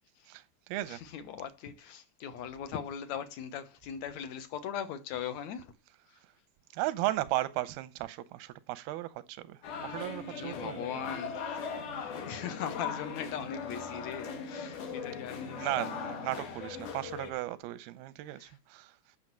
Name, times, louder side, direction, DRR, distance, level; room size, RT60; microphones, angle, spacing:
voice 1, 0.3-1.0 6.7-10.9 14.8-14.9 15.4-19.0, right 16 dB, 90° right, 2.7 m, -36 dB
voice 2, 0.9-5.7 6.1-6.2 10.3-15.7 18.4-18.5, left 8 dB, 65° left, 2.0 m, -40 dB
sound 1, 9.6-17.3, left 6 dB, 85° left, 4.1 m, -39 dB
9.6 x 6.4 x 7.5 m
omnidirectional pair, 4.2 m